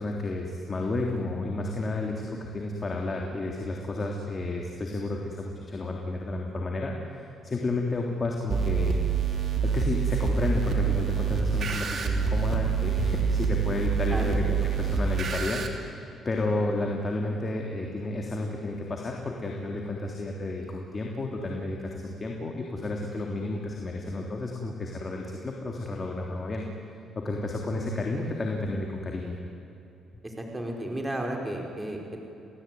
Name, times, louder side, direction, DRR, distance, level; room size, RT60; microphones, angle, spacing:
voice 1, 0.0-9.0 9.6-26.7 27.2-29.4, left 2 dB, 30° left, 0 dB, 3.5 m, -31 dB
sound 1, 8.5-15.7, right 6 dB, 55° right, 3.1 m, -26 dB
voice 2, 30.2-32.2, right 1 dB, 15° right, 1 dB, 5.2 m, -33 dB
29.5 x 18.5 x 9.5 m, 2.9 s
cardioid pair, 90°, 0 cm